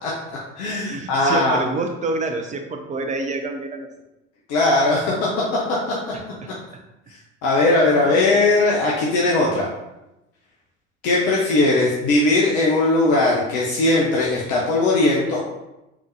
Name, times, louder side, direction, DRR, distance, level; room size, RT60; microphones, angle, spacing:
voice 1, 0.0-1.6 4.5-5.3 5.7-5.8 7.4-9.7 11.0-15.4, left 2 dB, 50° left, -4 dB, 0.9 m, -19 dB
voice 2, 0.9-3.9 6.1-6.8 8.1-8.2, right 3 dB, 20° right, 4 dB, 0.5 m, -28 dB
4.8 x 3.7 x 2.7 m, 0.95 s
figure-of-eight pair, 65°, 37 cm